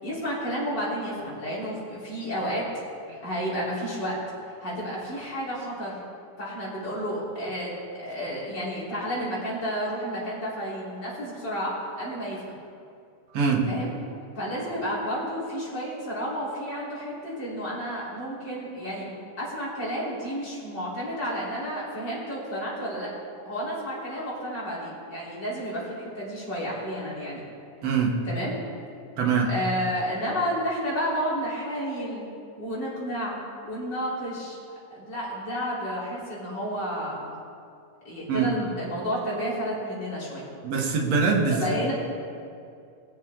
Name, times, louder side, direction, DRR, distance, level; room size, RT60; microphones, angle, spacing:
voice 1, 0.0-2.6 3.2-4.2 4.6-6.0 6.4-7.8 8.0-11.7 12.0-12.4 13.7-13.9 14.4-19.1 19.4-23.1 23.4-27.4 28.2-28.5 29.5-32.3 32.6-33.4 33.6-34.6 34.9-37.3 38.0-40.5 41.4-41.9, equal, 35° left, -8 dB, 3.9 m, -31 dB
voice 2, 13.3-13.7 27.8-28.2 29.2-29.5 38.3-38.5 40.6-41.6, right 5 dB, 60° right, 0 dB, 2.3 m, -23 dB
20.0 x 7.4 x 3.7 m, 2.5 s
omnidirectional pair, 3.6 m